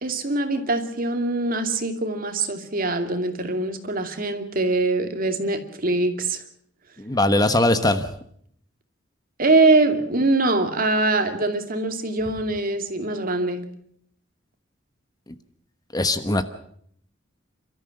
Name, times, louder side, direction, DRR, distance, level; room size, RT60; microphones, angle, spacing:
voice 1, 0.0-6.4 9.4-13.6, right 2 dB, 50° right, 6 dB, 2.5 m, -23 dB
voice 2, 7.0-8.1 15.9-16.4, left 2 dB, 20° left, 10 dB, 1.2 m, -20 dB
29.5 x 13.5 x 7.7 m, 0.67 s
head